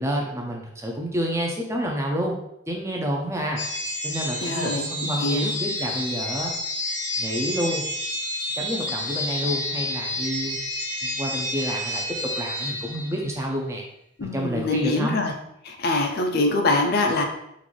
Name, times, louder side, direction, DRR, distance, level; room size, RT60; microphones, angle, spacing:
voice 1, 0.0-2.4 2.7-3.6 4.0-6.5 7.2-7.9 8.6-10.6 11.0-13.8 14.2-15.2, equal, 15° right, 0 dB, 0.4 m, -28 dB
sound 1, 3.6-13.4, left 1 dB, 70° left, 0.8 m, -30 dB
voice 2, 4.4-5.5 14.2-15.3 15.7-17.3, left 2 dB, 50° left, 4 dB, 0.4 m, -24 dB
3.8 x 2.5 x 3.1 m, 0.78 s
head